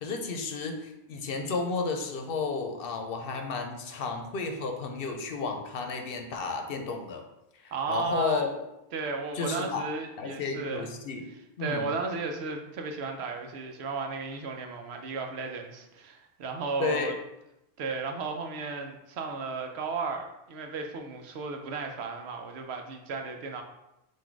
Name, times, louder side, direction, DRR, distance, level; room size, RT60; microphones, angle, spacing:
voice 1, 0.0-7.2 7.5-8.5 9.3-9.9 10.2-11.2 11.6-11.9 16.8-17.1, left 4 dB, 65° left, 4 dB, 0.8 m, -32 dB
voice 2, 7.7-8.5 8.9-10.9 11.6-17.1 17.8-23.6, right 4 dB, 85° right, 3 dB, 0.9 m, -34 dB
4.0 x 2.6 x 4.5 m, 0.89 s
omnidirectional pair, 1.1 m